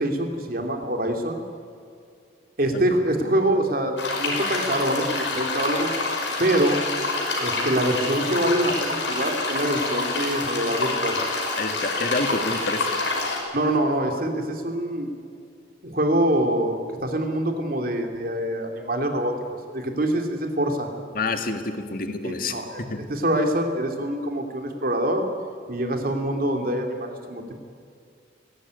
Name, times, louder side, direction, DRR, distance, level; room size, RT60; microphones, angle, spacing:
voice 1, 0.0-1.4 2.6-5.9 6.4-6.8 7.4-11.2 13.5-15.1 15.8-19.3 19.7-20.9 22.2-22.8 23.1-25.3 25.7-27.6, right 1 dB, 50° right, 4 dB, 2.8 m, -25 dB
sound 1, 4.0-13.4, left 3 dB, 80° left, 5.6 m, -27 dB
voice 2, 11.6-12.9 21.1-23.1, left 3 dB, 50° left, 6 dB, 2.0 m, -28 dB
20.5 x 18.5 x 9.6 m, 2.3 s
head